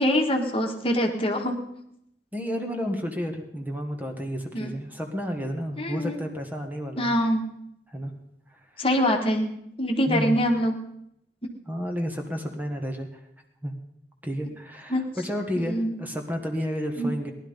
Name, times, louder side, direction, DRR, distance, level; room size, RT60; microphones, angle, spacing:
voice 1, 0.0-1.6 4.5-4.7 5.8-6.2 7.0-7.4 8.8-9.5 9.8-10.7 14.9-15.0 15.7-15.9 17.0-17.1, equal, 30° left, 3 dB, 1.6 m, -24 dB
voice 2, 2.3-7.1 7.9-8.1 8.5-8.8 10.1-10.4 11.7-13.2 13.6-13.7 14.2-17.3, equal, 10° right, 3 dB, 1.6 m, -31 dB
18.0 x 11.5 x 5.3 m, 0.78 s
head